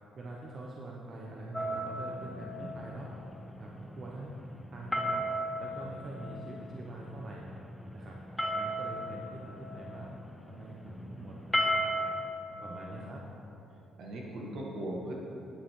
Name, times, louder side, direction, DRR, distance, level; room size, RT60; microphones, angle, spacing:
voice 1, 0.2-3.1 3.6-4.3 4.7-5.2 5.6-7.5 7.9-8.2 8.5-10.1 10.5-11.9 12.6-13.3, right 2 dB, 45° right, -2 dB, 1.0 m, -44 dB
sound 1, 1.5-12.3, equal, 10° left, 0.7 m, -36 dB
voice 2, 2.3-2.9 12.5-13.3 14.0-15.1, right 1 dB, 70° right, -2 dB, 1.8 m, -41 dB
9.9 x 8.7 x 3.8 m, 2.8 s
cardioid pair, 90°, 0 cm